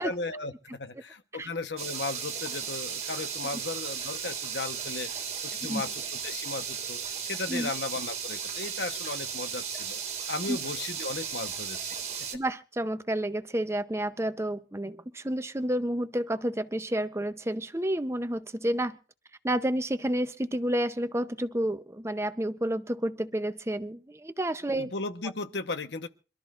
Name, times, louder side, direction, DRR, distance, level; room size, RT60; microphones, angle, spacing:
voice 1, 0.0-5.1 5.4-10.0 10.3-12.3 24.7-26.1, left 3 dB, 65° left, 10 dB, 1.1 m, -36 dB
sound 1, 1.8-12.4, right 7 dB, 35° right, 1.8 m, -35 dB
voice 2, 12.3-19.0 19.4-24.9, right 1 dB, 15° right, 11 dB, 0.7 m, -30 dB
27.0 x 13.0 x 2.5 m, 0.35 s
head